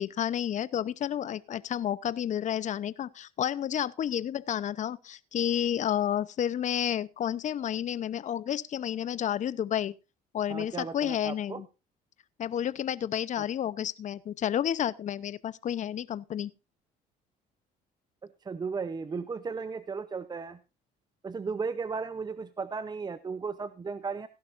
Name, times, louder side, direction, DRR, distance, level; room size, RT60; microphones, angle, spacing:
voice 1, 0.0-9.9 10.3-11.7 12.4-16.5, left 10 dB, 45° left, 0.7 m, -31 dB
voice 2, 10.5-11.6 18.4-20.6 21.2-24.3, right 5 dB, 25° right, 0.7 m, -35 dB
16.5 x 11.5 x 2.5 m
cardioid pair, 110°, 17 cm